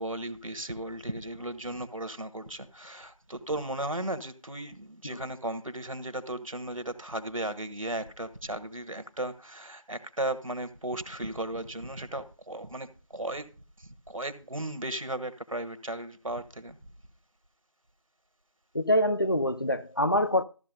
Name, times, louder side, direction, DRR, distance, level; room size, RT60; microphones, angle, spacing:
voice 1, 0.0-12.9 13.1-13.4 13.8-16.8, right 1 dB, 75° right, 1.4 m, -35 dB
voice 2, 18.7-20.4, left 1 dB, 40° left, 0.5 m, -25 dB
14.0 x 5.8 x 5.5 m
figure-of-eight pair, 170°, 17 cm